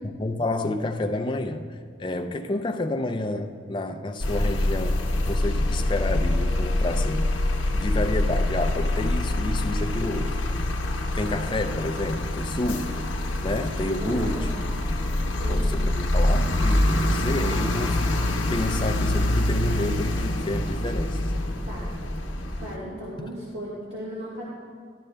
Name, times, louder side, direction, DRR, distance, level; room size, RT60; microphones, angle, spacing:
voice 1, 0.2-7.3 7.7-10.6 10.9-14.5 15.1-21.2, left 2 dB, 25° left, 5 dB, 0.4 m, -30 dB
sound 1, 4.2-22.8, left 1 dB, 85° left, 0.8 m, -25 dB
voice 2, 14.0-14.4 15.4-15.9 21.6-22.0 22.6-24.4, equal, 75° right, -7 dB, 1.4 m, -36 dB
11.5 x 11.0 x 2.2 m, 2.2 s
head